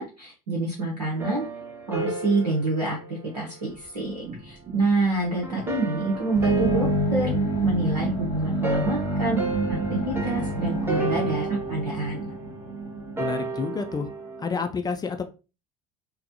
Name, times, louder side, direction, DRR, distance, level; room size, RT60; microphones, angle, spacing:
voice 1, 0.0-1.5 1.9-7.3 7.6-9.4 9.7-12.3, right 2 dB, 80° right, -2 dB, 0.8 m, -27 dB
sound 1, 1.1-4.1 5.4-14.6, right 3 dB, 10° right, 0.9 m, -33 dB
sound 2, 3.7-11.7, right 2 dB, 30° right, 1.2 m, -42 dB
sound 3, 6.3-14.1, right 1 dB, 90° left, 0.7 m, -28 dB
voice 2, 13.2-14.1 14.4-15.2, left 5 dB, 20° left, 7 dB, 0.3 m, -29 dB
4.1 x 2.1 x 2.7 m, 0.31 s
figure-of-eight pair, 60°, 20 cm